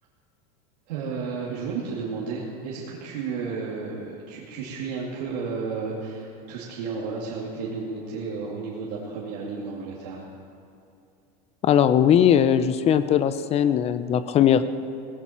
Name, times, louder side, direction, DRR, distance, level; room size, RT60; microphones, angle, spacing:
voice 1, 0.9-10.3, right 4 dB, 85° right, -5 dB, 2.4 m, -32 dB
voice 2, 11.6-14.6, left 9 dB, 30° left, 13 dB, 0.6 m, -19 dB
17.0 x 16.0 x 4.4 m, 2.6 s
supercardioid pair, 140°, 21 cm